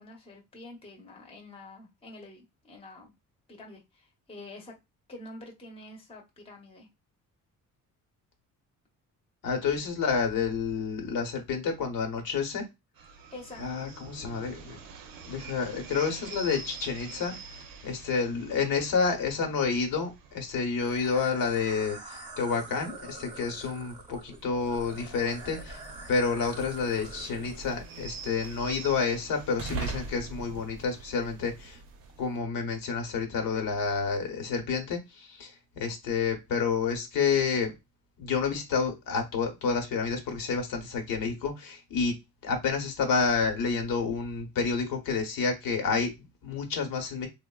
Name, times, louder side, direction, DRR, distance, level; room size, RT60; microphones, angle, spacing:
voice 1, 0.0-3.1 3.5-4.7 5.1-6.9 13.3-13.7, left 2 dB, 15° left, 0.7 m, -47 dB
voice 2, 9.4-12.6 13.6-14.8 15.2-25.8 26.1-31.8 32.2-37.7 38.2-42.2 42.4-47.3, left 5 dB, 80° left, 0.9 m, -29 dB
sound 1, 13.0-32.3, right 4 dB, 85° right, 0.6 m, -48 dB
sound 2, 20.8-27.7, right 2 dB, 15° right, 0.8 m, -45 dB
sound 3, 24.4-32.3, right 3 dB, 45° right, 0.5 m, -43 dB
3.6 x 2.0 x 2.2 m
cardioid pair, 145°, 34 cm